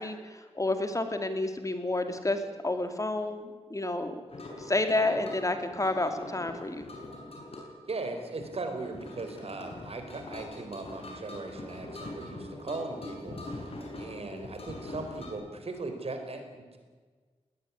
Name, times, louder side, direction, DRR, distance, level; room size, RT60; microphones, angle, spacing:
voice 1, 0.0-4.2 4.6-6.9, left 2 dB, 30° left, 7 dB, 2.7 m, -30 dB
sound 1, 4.3-15.3, left 2 dB, 60° left, 7.0 m, -43 dB
voice 2, 7.9-13.7 14.0-16.8, right 3 dB, 65° right, 6 dB, 4.6 m, -38 dB
20.0 x 19.0 x 9.9 m, 1.5 s
wide cardioid pair, 75°, 11 cm